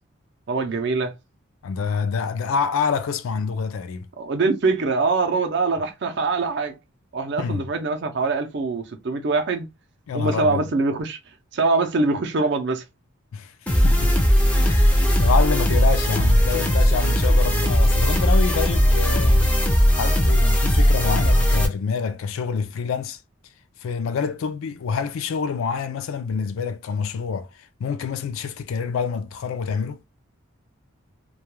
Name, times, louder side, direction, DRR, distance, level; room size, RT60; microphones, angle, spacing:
voice 1, 0.5-1.1 4.2-6.8 7.1-9.6 10.1-11.2 11.5-12.8, right 3 dB, 55° right, 0.5 m, -23 dB
voice 2, 1.6-4.1 7.4-7.6 10.1-10.6 13.3-13.5 13.8-14.1 14.6-14.9 15.2-23.2 23.8-30.0, left 5 dB, 80° left, 0.3 m, -27 dB
sound 1, 13.7-21.7, equal, 5° left, 0.4 m, -18 dB
2.3 x 2.2 x 3.0 m
head